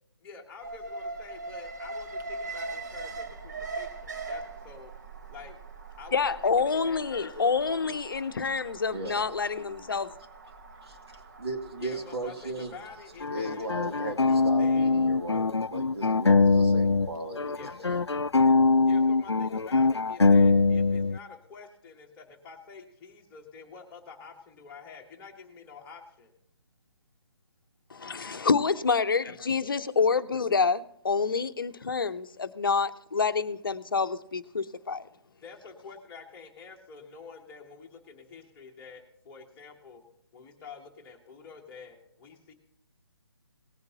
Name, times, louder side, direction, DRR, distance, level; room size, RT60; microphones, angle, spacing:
voice 1, 0.2-4.9 5.3-5.6 6.0-6.2 6.6-7.4 11.8-14.9 17.5-17.8 18.9-26.3 35.4-40.0 40.3-42.5, left 5 dB, 10° left, 1.2 m, -48 dB
Alarm, 0.6-16.7 17.0-17.1, right 3 dB, 40° right, 1.0 m, -42 dB
voice 2, 6.1-10.1 27.9-35.0, left 5 dB, 55° left, 0.7 m, -27 dB
voice 3, 8.9-9.2 10.8-12.8 13.3-17.9, right 1 dB, 70° right, 2.3 m, -37 dB
sound 1, 13.2-17.1 17.4-21.2, left 3 dB, 85° left, 0.4 m, -22 dB
18.5 x 9.5 x 2.8 m
figure-of-eight pair, 145°, 14 cm